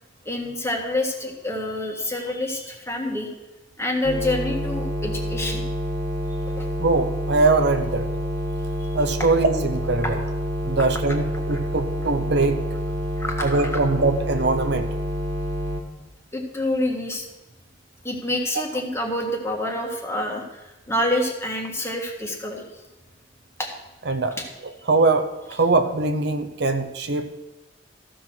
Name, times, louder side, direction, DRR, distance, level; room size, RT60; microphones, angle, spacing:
voice 1, 0.2-3.3 3.8-5.7 6.5-6.7 8.8-8.9 10.0-10.1 11.5-11.6 13.2-13.8 16.3-17.2 18.0-22.6 23.6-23.7 24.4-24.5, left 1 dB, 15° left, 1 dB, 1.6 m, -27 dB
sound 1, 4.0-15.8, equal, 85° right, 1.9 m, -28 dB
voice 2, 6.8-8.1 8.9-10.2 10.6-12.6 13.4-14.9 24.1-24.4 24.9-27.3, right 3 dB, 65° right, 8 dB, 0.8 m, -22 dB
14.0 x 6.3 x 6.1 m, 1.0 s
head